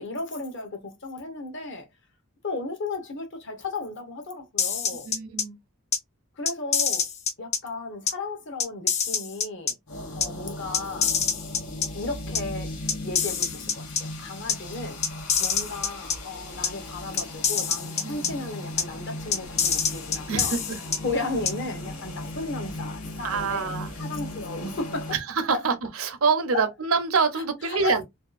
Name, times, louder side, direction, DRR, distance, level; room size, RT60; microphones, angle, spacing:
voice 1, 0.0-1.9 2.4-5.1 6.4-7.1 7.4-9.8 10.2-11.2 11.9-12.7 13.0-15.0 15.4-20.6 21.0-25.1 25.5-25.6 26.5-26.6 27.6-27.9, left 3 dB, 55° left, 0.8 m, -34 dB
sound 1, 4.6-5.4 5.9-6.0 6.5-7.6 8.1-8.2 8.6-9.7 10.2-10.3 10.7-11.9 12.3-12.4 12.9-14.0 14.5-14.6 15.0-16.2 16.6-16.7 17.2-18.3 18.8-18.9 19.3-21.0 21.5-21.6, left 7 dB, 30° left, 0.3 m, -25 dB
voice 2, 5.0-5.6 15.6-15.7 18.0-18.3 20.3-20.8 23.2-24.0 25.1-28.0, right 5 dB, 75° right, 0.6 m, -26 dB
sound 2, 9.9-25.2, left 1 dB, 90° left, 0.8 m, -37 dB
2.7 x 2.3 x 2.4 m
head